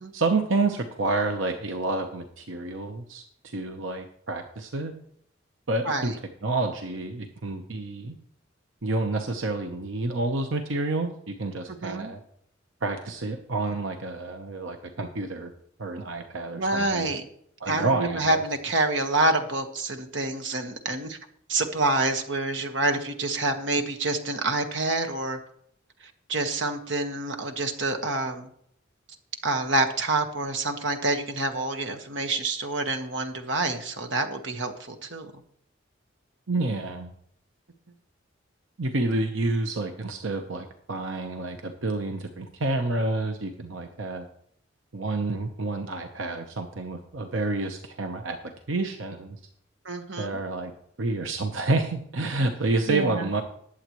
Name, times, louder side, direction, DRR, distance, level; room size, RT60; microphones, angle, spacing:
voice 1, 0.1-4.9 5.7-6.1 6.4-8.2 8.8-12.2 12.8-15.5 15.8-17.1 17.6-18.4 36.5-37.1 38.8-44.3 44.9-48.4 48.7-49.4 50.2-50.7 51.0-53.4, right 2 dB, 90° right, 5 dB, 1.0 m, -29 dB
voice 2, 5.8-6.2 11.8-12.1 16.5-17.2 17.7-21.2 21.5-25.4 26.0-28.5 29.4-35.3 49.8-50.4 52.9-53.3, right 2 dB, 70° right, 5 dB, 1.4 m, -27 dB
20.0 x 7.9 x 3.1 m, 0.69 s
head